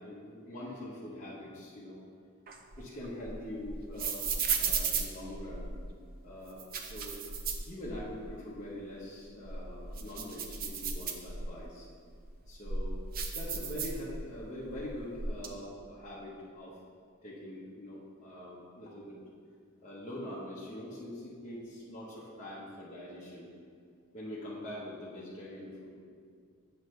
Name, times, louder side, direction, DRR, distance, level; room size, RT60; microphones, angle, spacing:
voice 1, 0.0-2.0 2.8-4.3 4.5-5.7 6.2-7.2 7.7-11.9 12.5-13.0 13.3-16.8 17.2-19.2 19.8-23.5 24.1-25.9, left 1 dB, 35° left, -7 dB, 0.9 m, -43 dB
sound 1, 2.5-5.9 6.5-8.3 8.7-8.8 9.3-11.7 12.2-14.4 14.7-15.5, right 5 dB, 40° right, 0.5 m, -35 dB
7.7 x 6.2 x 3.2 m, 2.1 s
head